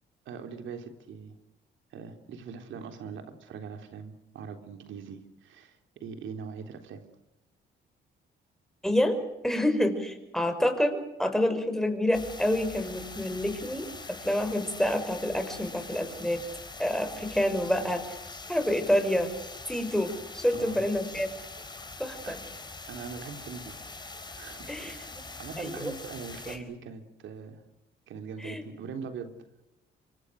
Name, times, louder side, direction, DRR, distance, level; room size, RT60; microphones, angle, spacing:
voice 1, 0.3-1.3 1.9-7.1 20.5-20.8 22.2-22.4 22.9-23.8 24.3-27.6 28.1-29.6, right 6 dB, 75° right, 7 dB, 3.6 m, -42 dB
voice 2, 8.8-9.2 9.4-13.9 14.2-16.4 16.8-18.0 18.5-19.3 19.7-21.3 22.0-22.4 24.7-25.2 25.6-25.9 26.5-26.6 28.4-28.6, left 1 dB, ahead, 7 dB, 5.8 m, -28 dB
sound 1, 12.1-26.6, left 3 dB, 20° left, 4.7 m, -43 dB
27.0 x 24.5 x 6.5 m, 0.90 s
cardioid pair, 90°, 20 cm